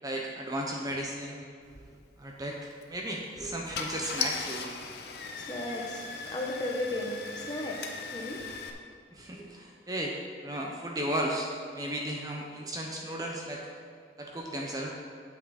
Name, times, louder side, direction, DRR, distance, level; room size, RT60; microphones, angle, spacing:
voice 1, 0.0-1.8 2.2-2.6 2.9-4.7 9.1-10.1 10.4-13.7 14.2-14.9, right 1 dB, 20° right, -1 dB, 0.8 m, -35 dB
Car / Engine starting, 2.6-2.8 3.4-3.5 3.7-8.7, left 5 dB, 60° left, 0.8 m, -38 dB
voice 2, 4.7-8.5, left 1 dB, 25° left, -1 dB, 1.2 m, -36 dB
9.1 x 7.4 x 4.2 m, 2.2 s
head